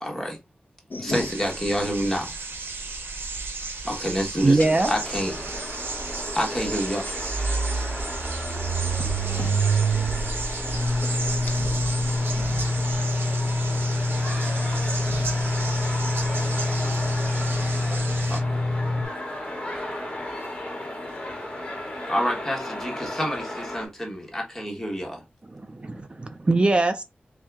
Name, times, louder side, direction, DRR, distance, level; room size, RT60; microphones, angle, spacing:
voice 1, 0.0-0.4 1.0-2.3 3.9-5.6 6.3-7.0 22.1-25.2, equal, 10° left, 1.3 m, -28 dB
voice 2, 0.9-1.3 4.6-4.7 9.0-9.6 10.9-11.8 13.8-13.9 15.0-15.1, left 3 dB, 60° left, 0.7 m, -36 dB
sound 1, 1.1-18.4, right 3 dB, 90° right, 0.8 m, -34 dB
voice 3, 4.4-4.9 25.5-27.0, right 2 dB, 30° right, 0.4 m, -22 dB
sound 2, 4.8-23.9, left 1 dB, 35° left, 1.6 m, -35 dB
sound 3, 5.1-5.2 5.4-5.5 7.0-19.1, equal, 50° right, 0.8 m, -26 dB
3.4 x 2.7 x 3.5 m
wide cardioid pair, 90°, 4 cm